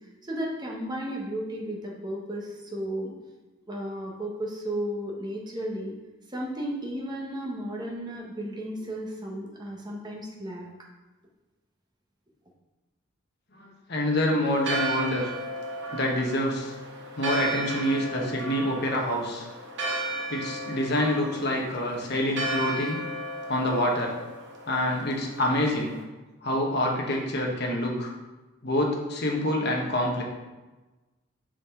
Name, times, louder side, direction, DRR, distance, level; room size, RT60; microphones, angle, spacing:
voice 1, 0.2-3.1 3.7-5.9 6.3-10.7, right 1 dB, 20° right, -1 dB, 1.0 m, -34 dB
voice 2, 13.5-15.3 15.9-16.7 17.2-19.5 20.3-23.0 23.5-24.1 24.7-25.9 26.4-28.1 28.6-30.2, left 1 dB, 55° left, 0 dB, 1.2 m, -26 dB
Church bell, 14.5-26.0, right 2 dB, 60° right, 1.0 m, -34 dB
5.3 x 5.3 x 3.7 m, 1.1 s
head